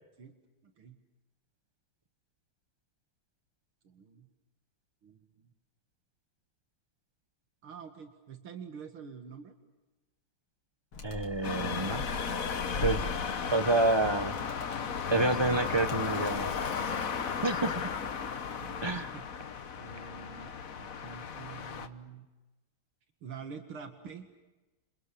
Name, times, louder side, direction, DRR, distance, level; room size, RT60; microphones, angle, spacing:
voice 1, 0.6-1.0 3.8-4.3 5.0-5.3 7.6-9.5 12.8-12.9 18.6-19.3 19.8-22.3 23.2-24.3, right 6 dB, 80° right, 7 dB, 2.8 m, -47 dB
Animal, 10.9-17.4, left 3 dB, 80° left, 3.6 m, -42 dB
voice 2, 11.0-12.0 12.8-13.0 13.5-14.3 15.1-16.5 17.4-17.8 18.8-19.1, right 2 dB, 25° right, 11 dB, 0.5 m, -28 dB
sound 1, 11.4-21.9, left 6 dB, 45° left, 1.4 m, -35 dB
29.5 x 27.5 x 6.9 m, 1.1 s
omnidirectional pair, 2.3 m